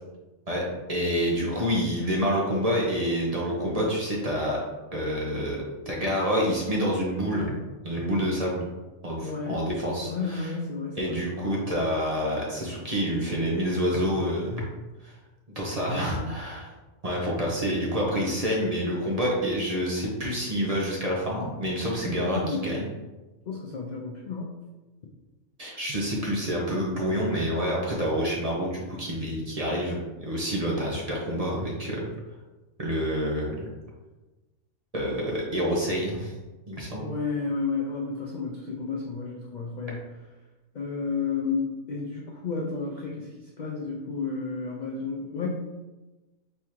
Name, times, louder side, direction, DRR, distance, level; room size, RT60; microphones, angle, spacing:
voice 1, 0.9-4.6 4.9-5.6 5.9-7.5 7.8-8.6 9.0-10.5 11.0-14.7 15.0-15.1 15.6-16.7 17.0-22.9 25.6-32.0 32.8-33.7 34.9-36.3 36.7-37.0, equal, 35° right, -3 dB, 0.7 m, -27 dB
voice 2, 9.2-9.7 10.0-11.2 15.9-16.3 22.0-22.7 23.5-24.5 37.0-40.0 40.7-43.3 43.6-45.5, left 4 dB, 70° left, -1 dB, 0.4 m, -32 dB
4.4 x 3.5 x 3.0 m, 1.2 s
omnidirectional pair, 1.4 m